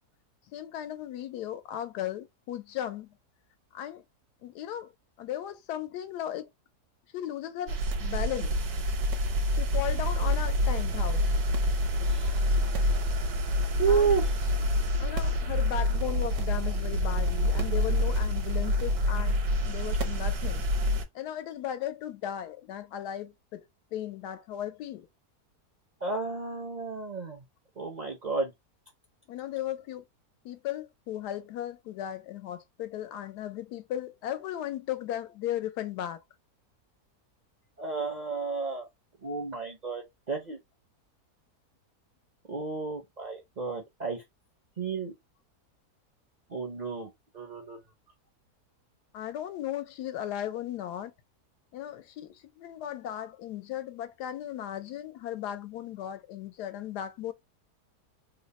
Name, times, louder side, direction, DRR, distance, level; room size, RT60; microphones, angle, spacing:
voice 1, 0.5-3.1 3.7-4.0 4.4-4.9 5.2-6.5 7.1-8.6 9.5-11.3 13.9-14.1 15.0-20.6 21.1-23.6 23.9-25.1 29.3-30.0 30.4-36.2 49.1-51.1 51.7-57.3, left 11 dB, 90° left, 1.2 m, -36 dB
sound 1, 7.7-21.0, left 1 dB, 75° right, 1.2 m, -27 dB
voice 2, 12.1-12.4 13.8-14.4 26.0-27.4 27.8-28.5 37.8-38.9 39.2-40.6 42.5-44.2 44.8-45.1 46.5-47.8, right 5 dB, 60° right, 0.4 m, -31 dB
Explosion, 15.2-16.9, left 1 dB, 50° left, 0.7 m, -49 dB
3.0 x 2.1 x 4.0 m
omnidirectional pair, 1.7 m